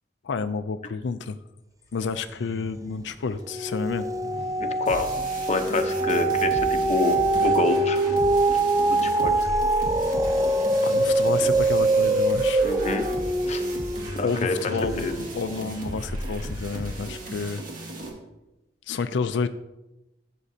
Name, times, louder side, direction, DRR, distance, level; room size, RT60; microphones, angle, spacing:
voice 1, 0.2-1.4 1.9-4.1 10.6-12.8 14.2-17.6 18.9-19.5, left 5 dB, 90° left, 10 dB, 0.4 m, -30 dB
sound 1, 2.4-2.9 3.3-15.8 16.3-16.4, right 2 dB, 20° right, 0.4 m, -24 dB
voice 2, 4.6-5.1 5.5-8.0 8.9-9.5 12.6-13.1 13.5-13.6 14.1-14.6 15.0-15.1, left 3 dB, 40° left, 7 dB, 0.7 m, -27 dB
sound 2, 4.9-18.1, right 1 dB, 50° right, 2.1 m, -36 dB
13.0 x 7.4 x 2.8 m, 0.98 s
head